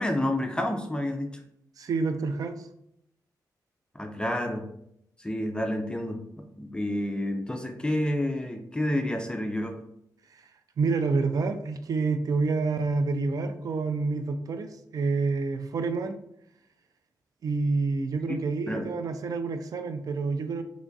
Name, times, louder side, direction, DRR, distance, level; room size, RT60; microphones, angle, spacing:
voice 1, 0.0-1.4 3.9-4.6 5.2-9.8 18.7-18.9, left 1 dB, 15° left, 4 dB, 0.4 m, -29 dB
voice 2, 1.8-2.7 10.3-10.5 10.8-16.2 17.4-20.6, right 4 dB, 55° right, 8 dB, 0.4 m, -28 dB
3.4 x 3.1 x 2.6 m, 0.75 s
cardioid pair, 100°, 7 cm